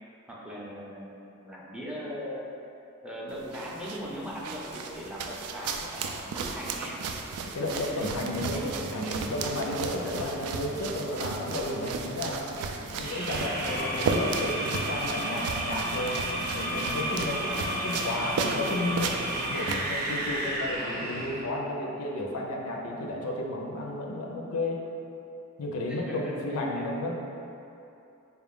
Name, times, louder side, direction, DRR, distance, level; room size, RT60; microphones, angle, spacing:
voice 1, 0.3-2.4 3.0-7.0 7.5-10.4 12.7-13.0 17.2-17.8 25.9-26.4 26.8-26.9, equal, 5° right, -6 dB, 0.4 m, -40 dB
sound 1, 3.3-20.3, right 4 dB, 90° right, 0.3 m, -35 dB
voice 2, 7.5-12.4 12.8-16.2 16.5-19.2 19.5-24.8 25.6-27.1, left 1 dB, 85° left, -1 dB, 0.5 m, -32 dB
sound 2, 13.0-21.5, right 1 dB, 45° right, 0.6 m, -32 dB
4.2 x 2.4 x 3.6 m, 2.8 s
head